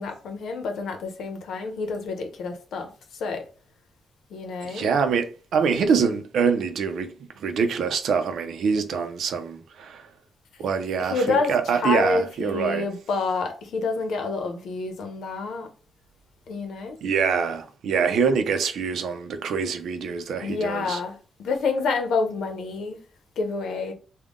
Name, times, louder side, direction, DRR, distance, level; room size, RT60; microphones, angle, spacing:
voice 1, 0.0-2.9 3.2-3.4 4.3-4.9 11.0-15.7 16.5-17.0 20.4-21.1 21.4-23.0 23.4-23.9, left 4 dB, 90° left, 0.8 m, -28 dB
voice 2, 4.6-7.1 7.4-10.0 10.6-12.9 17.0-21.0, right 6 dB, 75° right, 0.5 m, -25 dB
3.6 x 2.2 x 3.6 m
wide cardioid pair, 170°, 0 cm